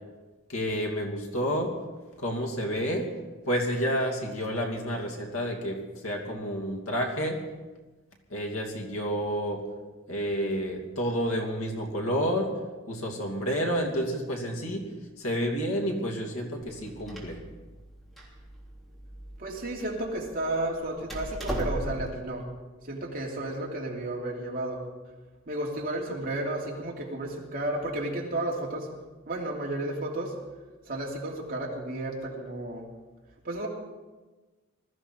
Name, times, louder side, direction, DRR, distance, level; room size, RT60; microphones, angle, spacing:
voice 1, 0.5-1.7 2.2-3.1 3.5-7.4 8.3-9.6 10.1-12.5 12.9-14.9 15.2-17.4, equal, 85° left, 1 dB, 2.9 m, -30 dB
Door, 16.6-22.2, equal, ahead, 3.4 m, -38 dB
voice 2, 19.4-22.4 22.8-24.8 25.5-28.9 29.3-30.3 30.9-32.9 33.4-33.7, right 1 dB, 45° right, -2 dB, 3.1 m, -32 dB
20.5 x 14.0 x 4.6 m, 1.2 s
head